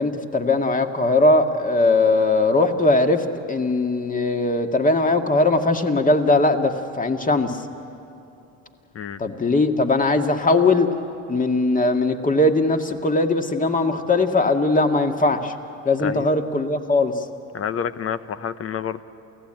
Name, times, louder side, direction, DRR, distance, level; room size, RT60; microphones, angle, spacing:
voice 1, 0.0-7.6 9.2-10.9 11.3-15.5 15.9-17.3, left 2 dB, 20° left, 5 dB, 1.9 m, -20 dB
voice 2, 17.5-19.0, left 8 dB, 35° left, 13 dB, 1.0 m, -28 dB
28.5 x 16.5 x 9.0 m, 2.7 s
hypercardioid pair, 80°, 39 cm